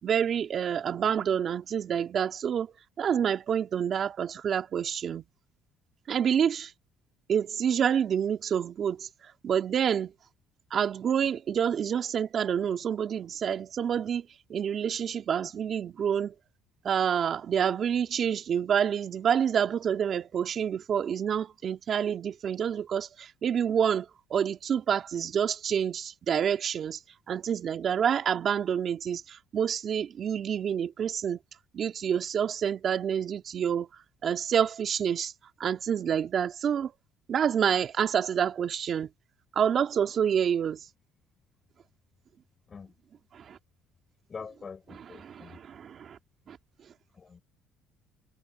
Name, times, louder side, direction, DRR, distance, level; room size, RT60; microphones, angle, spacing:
voice 1, 0.0-5.2 6.1-6.7 7.3-10.1 10.7-16.3 16.8-27.0 27.3-31.4 31.7-35.3 35.6-36.9 37.3-39.1 39.5-40.9 43.3-43.6 45.2-46.2 46.5-46.6 46.8-46.9, right 8 dB, 50° right, 3.0 m, -28 dB
voice 2, 44.3-45.6 47.1-47.4, left 5 dB, 35° left, 7.6 m, -44 dB
supercardioid pair, 85°, 0 cm